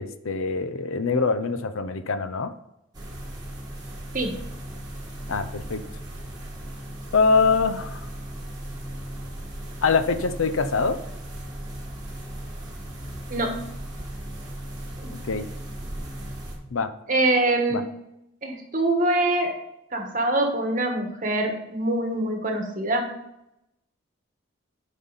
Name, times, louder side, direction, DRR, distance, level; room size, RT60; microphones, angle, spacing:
voice 1, 0.0-2.5 5.3-5.8 7.1-8.1 9.8-11.0 15.3-15.5 16.7-16.9 17.7-17.8, left 4 dB, 80° left, 10 dB, 0.7 m, -24 dB
sound 1, 2.9-16.6, right 1 dB, 20° right, 1.7 m, -37 dB
voice 2, 17.1-17.9 18.4-19.6 19.9-23.1, right 2 dB, 40° right, 3 dB, 1.4 m, -24 dB
10.5 x 5.5 x 4.0 m, 0.85 s
head